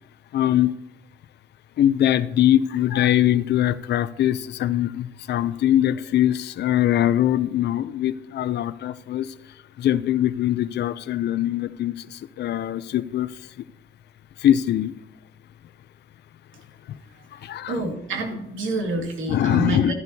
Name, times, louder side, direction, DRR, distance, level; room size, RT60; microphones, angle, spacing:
voice 1, 0.3-0.7 1.8-9.3 9.8-13.3 14.4-14.9 17.4-17.8 19.3-19.9, left 12 dB, 60° left, 14 dB, 0.5 m, -22 dB
voice 2, 17.7-19.9, right 2 dB, 80° right, 1 dB, 2.2 m, -27 dB
13.5 x 10.5 x 2.8 m, 0.83 s
cardioid pair, 90°, 20 cm